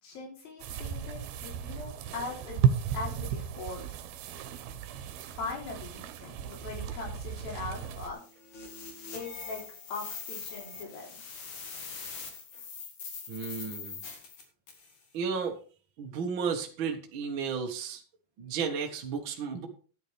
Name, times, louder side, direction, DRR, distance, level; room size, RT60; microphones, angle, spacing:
voice 1, 0.0-3.9 5.2-8.2 9.1-9.6 9.9-11.2, left 4 dB, 70° left, -1 dB, 5.3 m, -40 dB
sound 1, 0.6-8.1, right 8 dB, 90° right, 2.9 m, -33 dB
sound 2, 7.7-14.9, left 5 dB, 50° left, 3.4 m, -43 dB
voice 2, 13.3-14.0 15.1-15.6 16.0-18.0 18.4-19.7, right 6 dB, 55° right, 2 dB, 1.4 m, -33 dB
13.0 x 10.0 x 3.4 m, 0.38 s
omnidirectional pair, 4.3 m